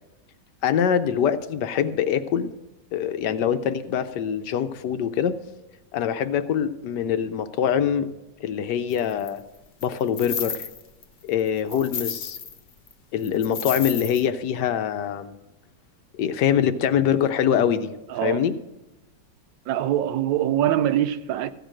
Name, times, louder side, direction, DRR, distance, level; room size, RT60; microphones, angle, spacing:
voice 1, 0.6-2.5 2.9-5.3 5.9-8.1 8.4-9.4 9.8-10.7 11.2-12.4 13.1-15.3 16.2-17.9 18.2-18.5, left 8 dB, 70° left, 1.2 m, -24 dB
sound 1, 8.9-9.3 9.8-11.0 11.4-12.6 12.9-13.0 13.2-14.2, left 6 dB, 50° left, 1.0 m, -32 dB
voice 2, 18.1-18.4 19.7-21.5, right 11 dB, 80° right, 1.3 m, -24 dB
15.0 x 5.1 x 7.6 m
omnidirectional pair, 2.0 m